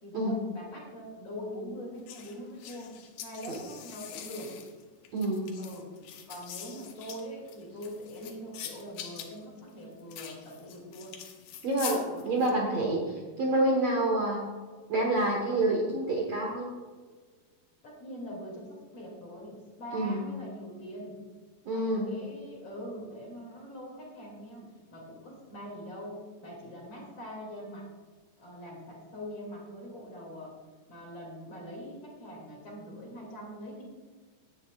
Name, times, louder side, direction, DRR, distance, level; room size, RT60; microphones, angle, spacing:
voice 1, 0.0-3.0 3.2-4.5 5.6-5.9 6.3-11.1 12.0-12.4 17.8-21.2 21.7-27.9 28.4-30.5 30.9-33.8, equal, 40° left, -2 dB, 3.3 m, -43 dB
sound 1, 2.1-12.5, left 9 dB, 85° left, 3.1 m, -44 dB
voice 2, 5.1-5.5 11.6-14.5 14.9-16.7 19.9-20.3 21.7-22.1, right 1 dB, 55° right, -2 dB, 2.1 m, -28 dB
17.0 x 10.5 x 2.4 m, 1.4 s
omnidirectional pair, 4.5 m